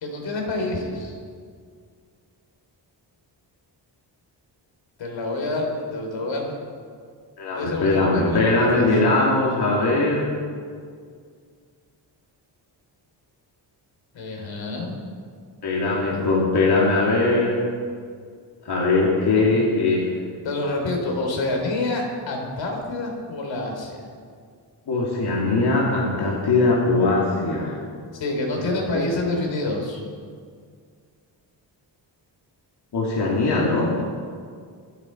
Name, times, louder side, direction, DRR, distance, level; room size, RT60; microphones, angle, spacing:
voice 1, 0.0-1.2 5.0-6.6 7.5-8.4 8.7-8.9 14.1-15.0 15.8-16.2 19.3-19.4 20.4-24.0 28.1-30.0, left 2 dB, 85° left, 2 dB, 3.2 m, -27 dB
voice 2, 7.4-10.2 15.6-17.6 18.6-20.1 24.9-27.8 28.6-29.0 32.9-33.9, left 2 dB, 60° left, -4 dB, 2.4 m, -21 dB
24.0 x 8.6 x 4.4 m, 2.1 s
wide cardioid pair, 145°, 44 cm